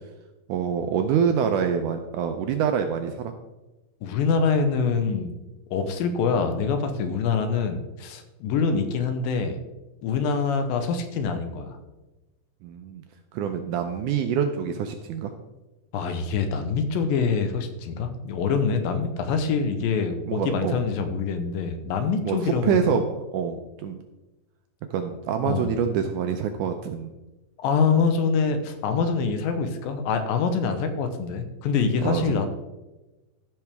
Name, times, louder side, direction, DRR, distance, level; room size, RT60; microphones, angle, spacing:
voice 1, 0.5-3.3 12.6-13.0 13.3-15.3 20.3-20.8 22.2-24.0 24.9-27.1 32.0-32.5, right 7 dB, 80° right, 6 dB, 1.8 m, -26 dB
voice 2, 4.0-5.3 5.7-9.6 10.0-11.8 15.9-23.0 25.5-25.7 27.6-32.5, left 5 dB, 80° left, 7 dB, 2.5 m, -25 dB
15.0 x 6.0 x 3.5 m, 1.1 s
omnidirectional pair, 4.1 m